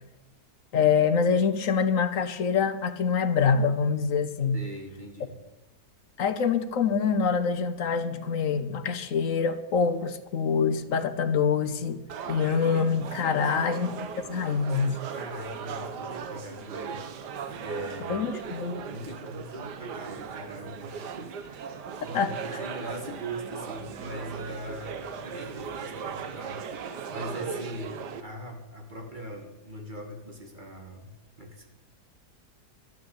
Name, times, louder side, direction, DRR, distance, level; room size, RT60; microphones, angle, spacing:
voice 1, 0.7-4.6 6.2-12.0 12.3-13.9 14.3-15.0 18.1-18.8 22.1-22.3, left 6 dB, 60° left, 11 dB, 1.2 m, -25 dB
voice 2, 4.5-5.4 13.2-13.7 15.1-18.3 18.9-31.7, right 1 dB, 30° right, 3 dB, 2.0 m, -41 dB
sound 1, 12.1-28.2, right 6 dB, 90° right, 1.6 m, -38 dB
12.5 x 9.3 x 8.7 m, 0.99 s
omnidirectional pair, 1.7 m